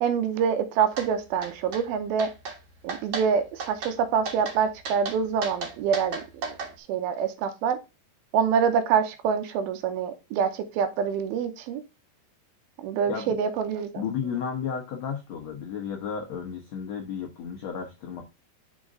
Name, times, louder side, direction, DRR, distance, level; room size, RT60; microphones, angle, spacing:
voice 1, 0.0-2.3 2.8-7.8 8.3-11.8 12.8-14.0, right 7 dB, 80° right, 9 dB, 2.5 m, -26 dB
sound 1, 1.0-1.1 1.4-1.8 2.2-2.6 2.9-3.3 3.6-3.9 4.3-4.6 4.8-6.7, right 4 dB, 50° right, 2.0 m, -34 dB
voice 2, 14.0-18.2, left 7 dB, 80° left, 1 dB, 1.5 m, -33 dB
6.3 x 5.1 x 3.7 m, 0.25 s
omnidirectional pair, 4.6 m